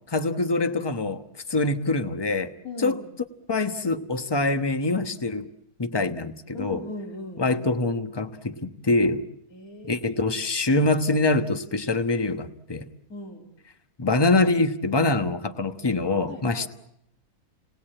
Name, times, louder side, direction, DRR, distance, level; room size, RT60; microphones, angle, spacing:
voice 1, 0.1-1.2 1.5-2.5 2.8-3.0 3.5-5.5 5.8-6.8 7.4-9.2 9.8-12.9 14.0-16.7, left 2 dB, 20° left, 9 dB, 0.9 m, -24 dB
voice 2, 2.6-3.0 6.5-7.6 9.5-10.0 13.1-13.5 16.3-16.7, left 2 dB, 70° left, 2 dB, 3.3 m, -38 dB
29.0 x 19.0 x 8.8 m, 0.80 s
omnidirectional pair, 1.6 m